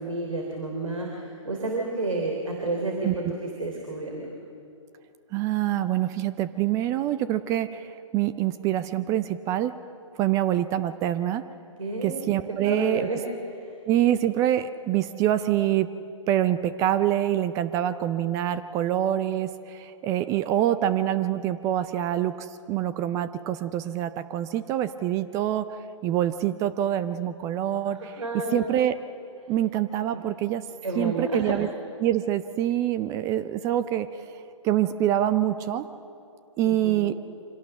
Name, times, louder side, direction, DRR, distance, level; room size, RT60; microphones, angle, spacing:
voice 1, 0.0-4.3 11.8-12.3 12.6-13.2 13.5-13.7 27.9-28.6 30.1-30.2 30.8-31.4 36.6-37.0, right 2 dB, 80° right, 1 dB, 3.5 m, -31 dB
voice 2, 5.3-9.7 10.2-11.4 12.0-13.1 13.9-15.9 16.3-28.2 28.5-29.0 29.5-30.6 31.0-31.7 32.0-34.4 34.6-35.9 36.6-37.1, right 12 dB, 20° right, 12 dB, 0.5 m, -25 dB
25.5 x 17.5 x 6.9 m, 2.6 s
figure-of-eight pair, 130°, 17 cm